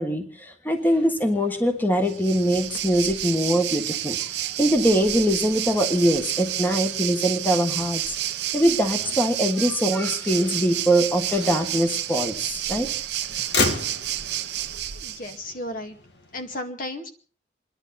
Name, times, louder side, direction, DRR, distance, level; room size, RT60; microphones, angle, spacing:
voice 1, 0.0-8.1 8.5-12.9, equal, 10° left, 5 dB, 1.5 m, -23 dB
Motor vehicle (road), 0.7-16.6, left 3 dB, 70° left, 1.9 m, -37 dB
Waves surf, 2.0-15.4, right 12 dB, 70° right, 0.9 m, -30 dB
voice 2, 15.0-16.0 16.3-17.1, left 1 dB, 50° left, 5 dB, 2.1 m, -34 dB
29.0 x 11.0 x 4.2 m, 0.41 s
head